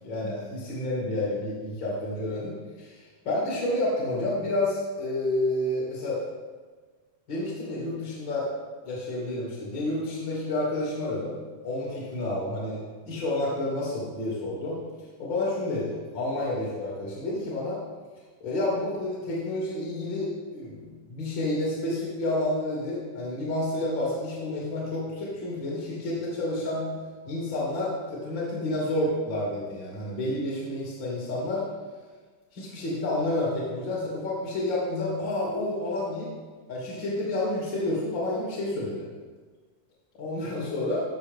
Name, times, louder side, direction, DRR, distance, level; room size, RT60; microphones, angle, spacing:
voice 1, 0.0-6.2 7.3-8.5 8.8-14.8 15.2-17.8 18.4-26.9 27.2-31.6 32.5-36.3 36.7-39.0 40.2-41.0, left 1 dB, 40° left, -5 dB, 2.4 m, -30 dB
13.5 x 6.8 x 3.5 m, 1.4 s
omnidirectional pair, 4.0 m